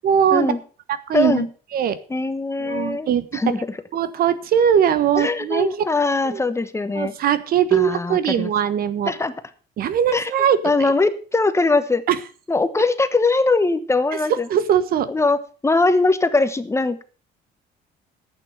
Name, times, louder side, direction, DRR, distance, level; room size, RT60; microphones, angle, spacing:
voice 1, 0.0-0.5 1.1-1.4 1.7-2.0 2.6-3.4 3.9-5.8 6.2-6.4 6.9-9.1 9.8-10.9 12.1-12.2 14.5-15.1, right 9 dB, 60° right, 14 dB, 1.4 m, -20 dB
voice 2, 1.1-1.5 2.1-3.6 5.1-7.1 7.7-8.5 9.1-9.3 10.1-10.3 10.6-12.0 12.5-14.5 15.1-17.0, left 3 dB, 15° left, 12 dB, 1.1 m, -21 dB
11.0 x 8.8 x 6.6 m, 0.39 s
cardioid pair, 110°, 17 cm